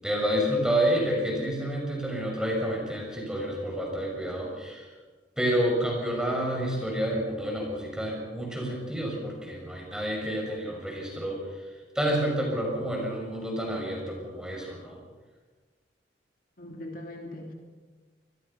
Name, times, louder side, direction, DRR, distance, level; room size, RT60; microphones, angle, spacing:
voice 1, 0.0-4.9 5.4-11.4 11.9-15.0, equal, 5° right, -1 dB, 6.8 m, -29 dB
voice 2, 16.6-17.5, left 1 dB, 50° left, 1 dB, 2.9 m, -40 dB
28.0 x 21.0 x 5.8 m, 1.4 s
head